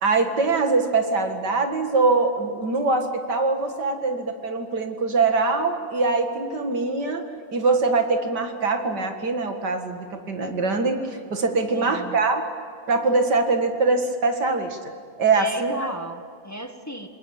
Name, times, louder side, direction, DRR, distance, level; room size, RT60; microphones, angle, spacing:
voice 1, 0.0-12.4 12.9-14.9 15.2-15.9, right 3 dB, 60° right, 5 dB, 2.5 m, -23 dB
voice 2, 11.7-12.2 15.3-17.1, right 1 dB, 10° left, 6 dB, 1.2 m, -34 dB
27.5 x 20.5 x 8.8 m, 2.3 s
omnidirectional pair, 2.1 m